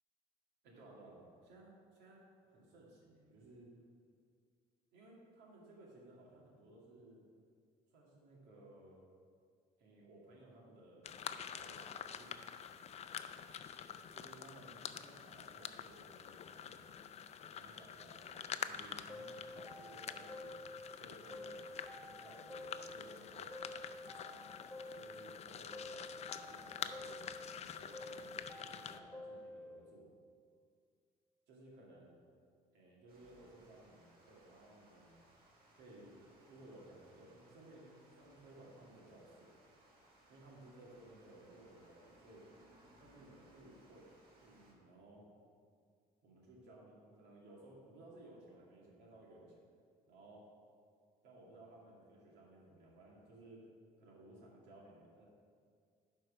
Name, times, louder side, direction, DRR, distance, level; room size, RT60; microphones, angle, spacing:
voice 1, 0.6-3.7 4.9-7.2 7.9-9.0 9.8-12.7 14.1-16.9 17.5-20.6 20.9-21.6 21.9-23.5 24.2-24.5 24.9-27.2 27.6-30.1 31.5-32.1 32.7-35.2 35.7-39.6 40.3-42.5 43.0-44.1 44.4-45.2 46.2-49.6 50.1-50.4 51.2-53.7 54.0-55.2, right 1 dB, 85° right, -3 dB, 2.2 m, -59 dB
sound 1, 11.0-29.0, left 8 dB, 40° left, 0.4 m, -47 dB
sound 2, 19.1-21.0 21.3-23.2 23.5-25.4 25.7-27.6 27.9-29.8, left 1 dB, ahead, 1.1 m, -50 dB
Water, 33.1-44.7, right 1 dB, 65° right, 2.1 m, -66 dB
11.5 x 4.6 x 4.9 m, 2.2 s
cardioid pair, 110°, 17 cm